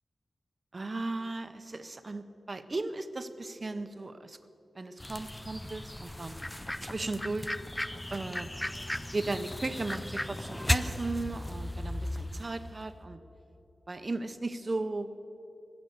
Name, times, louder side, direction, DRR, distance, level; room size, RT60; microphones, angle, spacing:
voice 1, 0.7-4.4 4.7-7.5 8.1-8.5 9.1-13.2 13.9-15.1, right 2 dB, 30° right, 11 dB, 0.7 m, -36 dB
sound 1, 5.0-12.7, left 1 dB, 10° left, 0.4 m, -36 dB
19.0 x 8.0 x 8.0 m, 2.9 s
wide cardioid pair, 160°, 0 cm